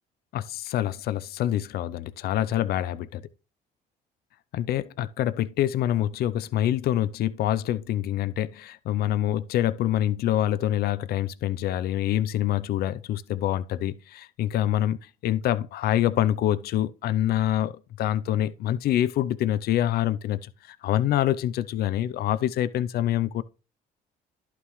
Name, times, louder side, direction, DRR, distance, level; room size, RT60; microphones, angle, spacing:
voice 1, 0.3-3.2 4.5-15.0 15.2-23.4, left 12 dB, 65° left, 0.6 m, -26 dB
11.0 x 5.9 x 3.2 m
cardioid pair, 110°, 17 cm